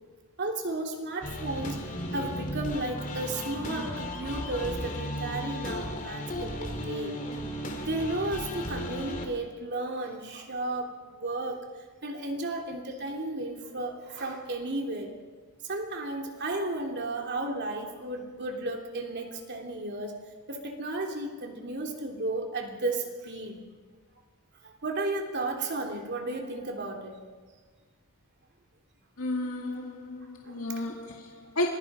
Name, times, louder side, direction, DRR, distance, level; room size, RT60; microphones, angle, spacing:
voice 1, 0.4-1.8 2.1-7.1 7.9-11.6 12.0-15.1 15.6-20.2 20.5-23.6 24.6-27.2 30.4-30.6, right 2 dB, 50° right, 3.1 m, -33 dB
sound 1, 1.2-9.3, left 1 dB, 35° left, 2.9 m, -35 dB
voice 2, 29.2-31.7, left 1 dB, 70° left, 2.0 m, -33 dB
26.5 x 21.5 x 5.0 m
head